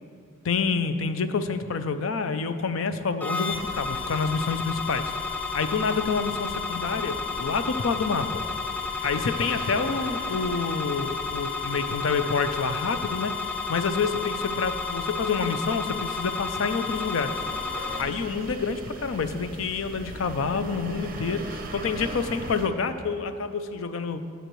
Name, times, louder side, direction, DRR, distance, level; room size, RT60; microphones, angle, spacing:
voice 1, 0.4-5.1 5.5-8.4 9.0-17.4 18.0-24.2, left 5 dB, 80° left, 10 dB, 0.5 m, -28 dB
sound 1, 3.2-18.0, left 5 dB, 5° left, 0.5 m, -32 dB
sound 2, 3.5-22.7, right 2 dB, 45° right, 0.7 m, -41 dB
13.0 x 7.9 x 3.1 m, 2.3 s
head